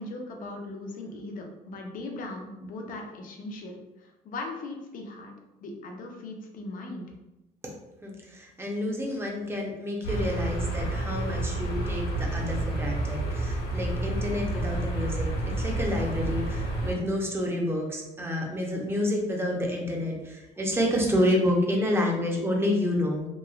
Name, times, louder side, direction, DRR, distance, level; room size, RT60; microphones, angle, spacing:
voice 1, 0.0-5.3 5.6-7.1, left 2 dB, 55° left, 2 dB, 0.5 m, -39 dB
voice 2, 8.0-23.3, left 1 dB, 15° right, 0 dB, 0.6 m, -29 dB
sound 1, 10.0-16.9, right 1 dB, 70° left, 0.9 m, -29 dB
3.0 x 2.3 x 2.3 m, 0.99 s
cardioid pair, 110°, 17 cm